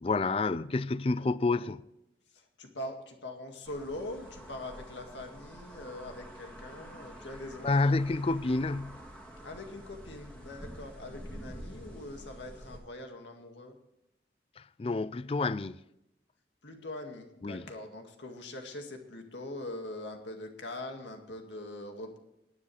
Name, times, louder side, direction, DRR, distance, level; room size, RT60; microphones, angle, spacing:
voice 1, 0.0-1.8 7.6-9.0 14.8-15.8 17.4-17.6, left 3 dB, 30° left, 0.4 m, -29 dB
voice 2, 1.2-1.7 2.3-8.0 9.4-13.8 16.6-22.2, left 1 dB, 85° left, 2.0 m, -43 dB
sound 1, 3.6-12.8, equal, 5° left, 2.1 m, -48 dB
19.0 x 9.9 x 3.3 m
head